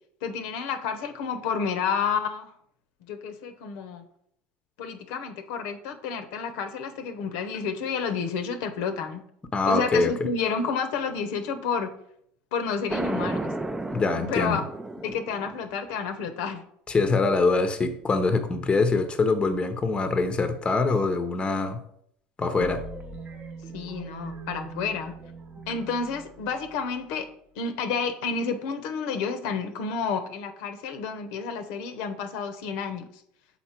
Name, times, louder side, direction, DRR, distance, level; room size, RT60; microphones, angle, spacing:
voice 1, 0.2-2.5 3.1-4.0 4.8-9.2 9.6-11.9 12.5-13.5 14.3-14.6 15.0-16.6 23.7-25.1 25.7-27.3 27.6-33.1, left 5 dB, 75° left, 8 dB, 0.8 m, -30 dB
voice 2, 9.5-10.3 13.9-14.6 16.9-21.8 22.4-22.8, left 3 dB, 20° left, 9 dB, 0.7 m, -24 dB
sound 1, 12.9-15.7, right 2 dB, 10° right, 0.4 m, -32 dB
sound 2, 22.6-27.3, right 4 dB, 30° right, 0.8 m, -41 dB
5.8 x 4.2 x 4.4 m, 0.69 s
supercardioid pair, 110°, 5 cm